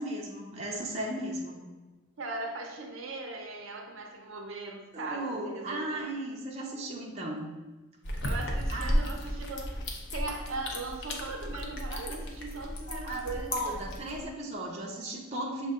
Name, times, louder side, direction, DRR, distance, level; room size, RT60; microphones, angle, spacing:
voice 1, 0.0-1.6 4.9-7.5 8.7-9.0 12.9-15.7, right 1 dB, 30° right, -2 dB, 0.6 m, -36 dB
voice 2, 2.2-6.1 8.2-9.8 10.1-13.8, right 3 dB, 75° right, 2 dB, 0.6 m, -39 dB
sound 1, 8.0-14.3, equal, 60° left, 0.6 m, -34 dB
6.4 x 2.2 x 3.6 m, 1.1 s
head